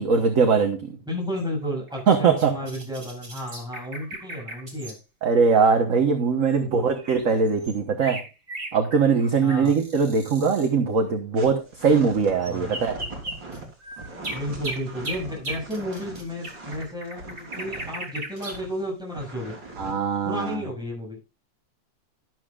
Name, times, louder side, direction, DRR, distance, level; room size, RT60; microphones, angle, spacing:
voice 1, 0.0-0.9 2.1-2.5 5.2-8.2 8.7-13.0 19.8-20.6, right 5 dB, 45° right, 5 dB, 1.5 m, -21 dB
voice 2, 1.1-5.0 6.6-6.9 9.4-9.8 12.5-12.9 14.3-19.6 20.2-21.2, equal, ahead, -2 dB, 7.4 m, -32 dB
sound 1, 1.4-5.0 6.5-6.6 6.9-10.7 12.4-18.6, right 1 dB, 30° right, 3.0 m, -37 dB
sound 2, 11.4-18.8 19.2-19.9 20.3-20.6, right 2 dB, 65° right, 4.3 m, -40 dB
12.5 x 12.0 x 2.5 m, 0.28 s
omnidirectional pair, 2.1 m